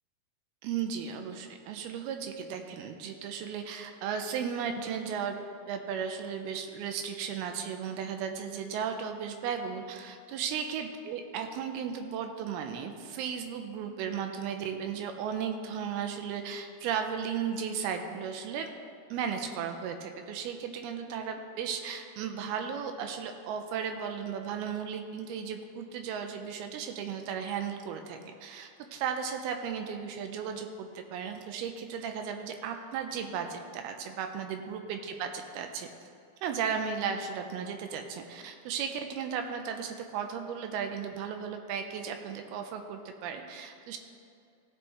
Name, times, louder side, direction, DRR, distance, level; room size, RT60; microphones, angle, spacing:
voice 1, 0.6-18.7 19.1-35.9 36.4-44.0, right 7 dB, 90° right, 5 dB, 2.6 m, -35 dB
16.0 x 6.2 x 3.2 m, 2.4 s
omnidirectional pair, 4.5 m